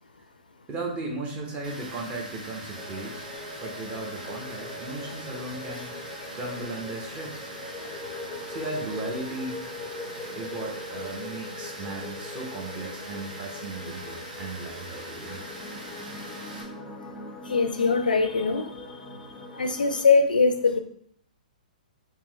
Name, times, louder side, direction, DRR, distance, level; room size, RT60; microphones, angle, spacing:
voice 1, 0.7-3.3 3.6-5.9 6.3-7.5 8.5-9.6 10.3-15.4, right 2 dB, 20° right, 0 dB, 0.8 m, -36 dB
Water, 1.6-16.6, right 1 dB, 75° right, 1.1 m, -42 dB
sound 1, 2.8-20.1, left 2 dB, 5° left, 0.5 m, -41 dB
voice 2, 17.5-18.7 19.5-20.8, left 4 dB, 80° left, 7 dB, 0.4 m, -22 dB
3.5 x 2.8 x 3.1 m, 0.65 s
figure-of-eight pair, 125°, 5 cm